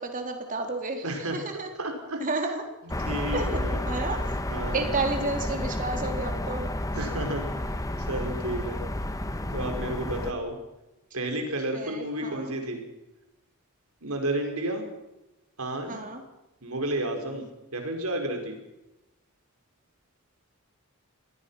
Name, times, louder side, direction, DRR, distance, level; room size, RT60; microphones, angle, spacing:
voice 1, 0.0-1.7 2.2-2.6 3.3-3.6 3.9-4.2 4.7-6.7 11.3-11.5 11.7-12.5 15.9-16.2, right 3 dB, 40° right, 4 dB, 3.7 m, -31 dB
voice 2, 1.0-1.4 1.8-2.2 3.0-3.8 4.5-4.9 6.9-7.7 8.0-8.9 9.5-10.6 11.1-12.8 14.0-14.9 15.6-16.0 16.6-18.6, right 1 dB, 75° right, 4 dB, 5.2 m, -31 dB
sound 1, 2.9-10.3, left 1 dB, 15° left, 1.2 m, -31 dB
26.0 x 19.0 x 5.8 m, 0.97 s
head